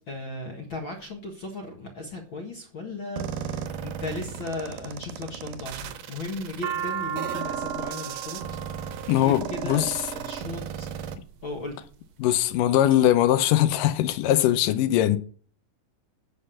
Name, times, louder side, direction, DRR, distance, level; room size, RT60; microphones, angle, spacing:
voice 1, 0.0-10.9 11.4-11.8, left 2 dB, 45° left, 1.9 m, -36 dB
sound 1, 3.2-11.2, right 8 dB, 80° right, 2.6 m, -35 dB
sound 2, 6.2-10.4 11.2-11.7 12.3-13.0 13.3-13.4 13.6-14.4, right 8 dB, 65° right, 2.0 m, -35 dB
voice 2, 9.1-9.9 12.2-15.2, left 12 dB, 75° left, 2.2 m, -21 dB
9.7 x 6.4 x 7.0 m
omnidirectional pair, 4.1 m